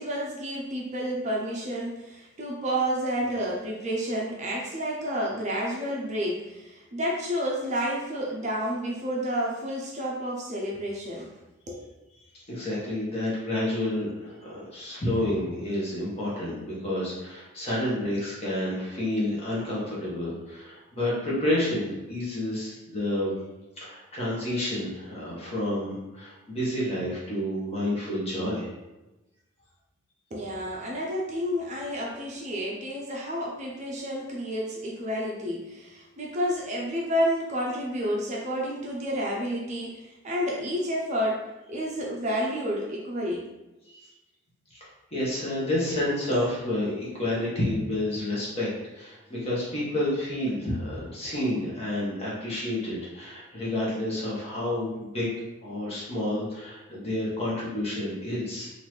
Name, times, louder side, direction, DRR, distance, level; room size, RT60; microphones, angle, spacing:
voice 1, 0.0-11.3 11.7-11.9 30.3-43.4, equal, 35° right, -3 dB, 0.6 m, -30 dB
voice 2, 12.5-23.3 23.8-28.7 43.9-44.1 44.7-44.8 45.1-55.3 55.6-58.7, left 1 dB, 30° left, -6 dB, 1.3 m, -29 dB
4.0 x 2.6 x 3.2 m, 1.0 s
head